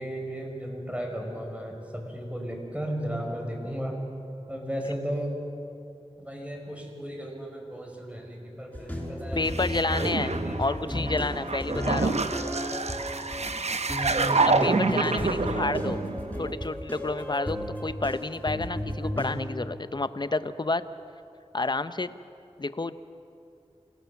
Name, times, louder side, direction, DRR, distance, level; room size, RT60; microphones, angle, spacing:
voice 1, 0.0-4.0 4.5-5.3 6.2-9.4 10.0-10.6 12.0-12.1 14.5-15.6, equal, 10° right, 1 dB, 5.2 m, -35 dB
sound 1, 8.7-19.3, equal, 10° left, 5.7 m, -33 dB
voice 2, 9.4-12.2 14.4-16.0 16.4-20.8 21.5-22.1 22.6-22.9, left 3 dB, 40° left, 13 dB, 0.8 m, -30 dB
sound 2, 9.4-16.5, right 3 dB, 70° right, 1.0 m, -28 dB
27.0 x 18.0 x 7.1 m, 2.7 s
wide cardioid pair, 50°, 11 cm